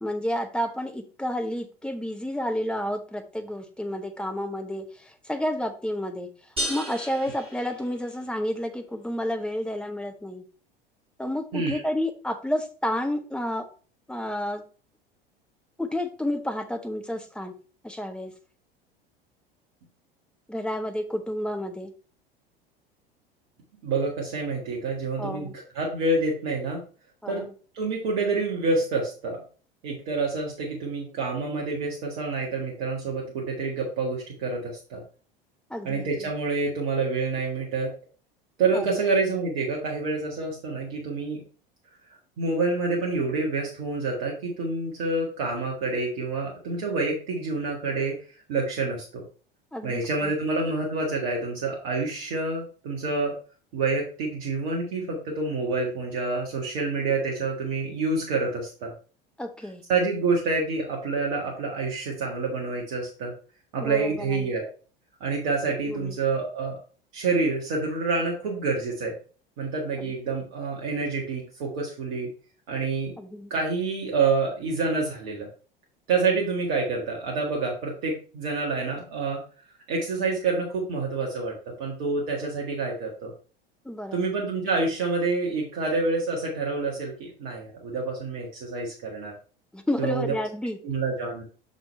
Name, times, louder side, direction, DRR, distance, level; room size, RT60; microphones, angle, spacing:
voice 1, 0.0-10.4 11.2-13.7 14.1-14.6 15.8-17.5 17.8-18.3 20.5-21.9 25.2-25.5 27.2-27.5 35.7-36.3 38.7-38.8 49.7-50.3 59.4-59.8 63.7-64.5 65.9-66.2 70.0-70.1 73.2-73.5 83.8-84.3 89.7-90.8, left 1 dB, 5° left, 5 dB, 0.9 m, -30 dB
sound 1, 6.6-8.4, equal, 20° right, 2.6 m, -34 dB
voice 2, 23.8-25.5 25.8-26.8 27.3-27.4 27.7-29.4 29.8-35.0 35.8-37.9 38.6-41.4 42.4-48.1 48.5-49.2 49.8-53.3 53.7-58.9 59.9-63.3 63.7-64.7 65.2-66.7 67.1-69.1 69.6-72.3 72.7-73.1 73.5-75.5 76.1-79.4 79.9-83.3 84.1-89.3 90.0-90.2 90.8-91.4, right 3 dB, 55° right, -2 dB, 1.7 m, -27 dB
6.1 x 4.1 x 4.3 m, 0.39 s
figure-of-eight pair, 75°, 29 cm